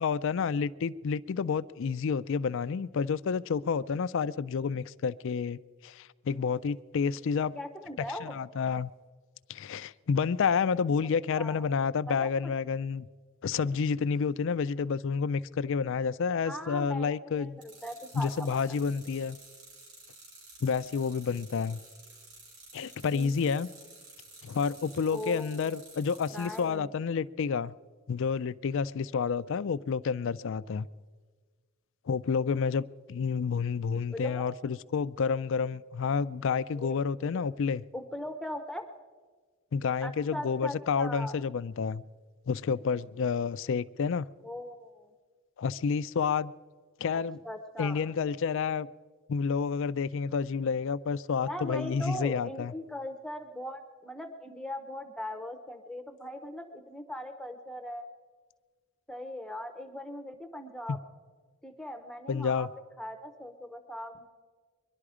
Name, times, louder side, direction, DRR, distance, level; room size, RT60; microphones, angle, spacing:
voice 1, 0.0-7.6 8.4-8.9 9.5-13.1 13.4-17.6 18.1-19.4 20.6-21.8 22.7-23.7 24.4-27.7 28.1-30.9 32.1-37.8 39.7-42.0 42.5-44.3 45.6-46.5 47.0-47.4 47.8-48.9 49.3-52.7 62.3-62.7, left 5 dB, 60° left, 17 dB, 0.4 m, -29 dB
voice 2, 7.5-8.4 11.3-11.7 12.1-12.5 16.4-18.6 23.0-23.3 25.1-25.6 26.3-26.9 33.9-34.4 36.7-37.0 37.3-37.4 37.9-38.9 40.0-41.4 44.4-45.1 47.1-48.1 51.4-58.1 59.1-61.0 61.6-64.3, left 1 dB, 5° left, 6 dB, 0.7 m, -40 dB
sound 1, 17.6-26.6, right 2 dB, 85° right, 5.7 m, -52 dB
22.5 x 11.5 x 4.9 m, 1.5 s
head